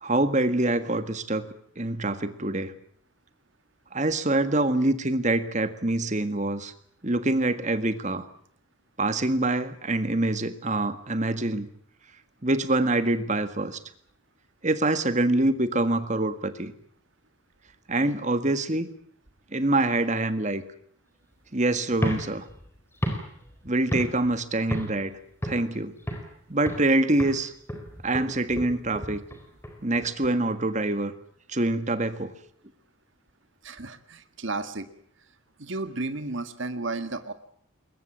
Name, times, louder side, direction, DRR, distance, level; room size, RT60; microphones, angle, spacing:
voice 1, 0.0-1.5 1.8-2.7 3.9-6.7 7.0-8.3 9.0-11.7 12.4-13.8 14.6-16.7 17.9-18.9 19.5-20.6 21.5-22.5 23.6-25.1 25.4-25.9 26.5-27.5 28.0-29.2 29.8-31.1 31.5-32.3, right 2 dB, 35° right, 11 dB, 1.7 m, -25 dB
sound 1, 21.9-24.4 24.7-25.1 25.4-26.4 26.7-26.9 27.2-30.3, equal, 10° left, 4.0 m, -33 dB
voice 2, 33.6-34.9 35.6-37.3, right 3 dB, 65° right, 9 dB, 1.7 m, -33 dB
22.0 x 20.0 x 8.7 m, 0.62 s
head